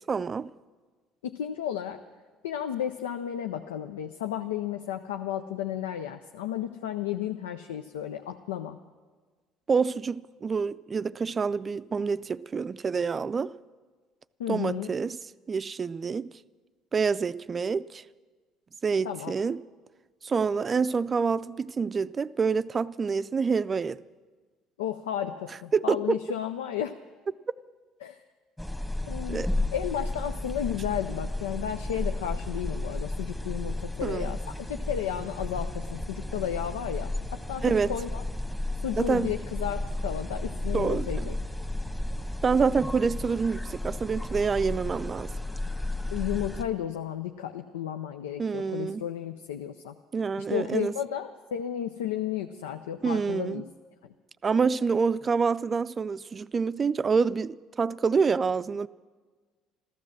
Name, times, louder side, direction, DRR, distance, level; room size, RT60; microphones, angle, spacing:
voice 1, 0.1-0.5 9.7-13.5 14.5-15.2 15.5-16.3 16.9-18.0 18.8-19.6 20.2-24.0 25.7-26.2 29.3-29.5 34.0-34.3 37.6-37.9 39.0-39.3 40.7-41.3 42.4-45.3 48.4-49.0 50.1-50.9 53.0-53.6 54.4-58.9, right 5 dB, 35° right, 0.4 m, -27 dB
voice 2, 1.2-2.0 2.4-8.8 14.4-14.9 19.0-19.3 24.8-26.9 28.0-28.2 29.1-37.6 37.9-38.2 38.8-41.4 46.1-49.9 50.5-53.6, left 10 dB, 85° left, 0.5 m, -33 dB
sound 1, 28.6-46.6, left 1 dB, 10° left, 1.4 m, -33 dB
14.0 x 13.0 x 7.4 m
hypercardioid pair, 65°, 0 cm